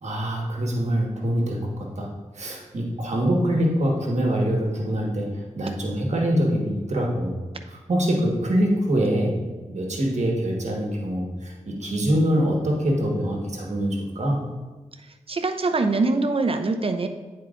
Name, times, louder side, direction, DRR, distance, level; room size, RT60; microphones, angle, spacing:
voice 1, 0.0-2.1 2.3-7.3 7.7-14.4, equal, 65° right, 0 dB, 1.4 m, -24 dB
voice 2, 15.3-17.1, right 3 dB, 45° right, 7 dB, 0.7 m, -23 dB
9.5 x 4.6 x 2.5 m, 1.3 s
cardioid pair, 45°, 13 cm